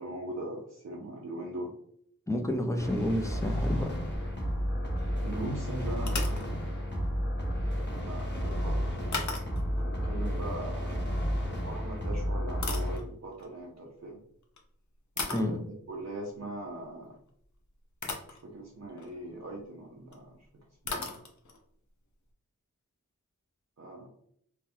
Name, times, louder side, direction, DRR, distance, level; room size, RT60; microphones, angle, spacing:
voice 1, 0.0-1.7 5.2-6.6 7.5-9.2 9.8-11.1 11.6-14.2 15.2-15.6 15.9-17.2 18.3-20.4 20.8-21.1 23.8-24.1, right 1 dB, 55° right, -2 dB, 0.6 m, -40 dB
voice 2, 2.3-3.9 15.3-15.6, left 1 dB, 10° left, 4 dB, 0.5 m, -30 dB
sound 1, 2.8-13.0, equal, 35° left, 0.9 m, -32 dB
sound 2, 3.7-4.7 4.9-5.1 6.0-6.5 9.1-9.8 11.5-11.7 12.3-13.5 14.4-14.6 15.2-15.6 17.4-17.5 18.0-18.4 18.9-19.2 20.1-20.2 20.4-20.5 20.8-21.6, left 3 dB, 60° left, 0.6 m, -37 dB
3.4 x 2.2 x 2.7 m, 0.66 s
wide cardioid pair, 50°, 32 cm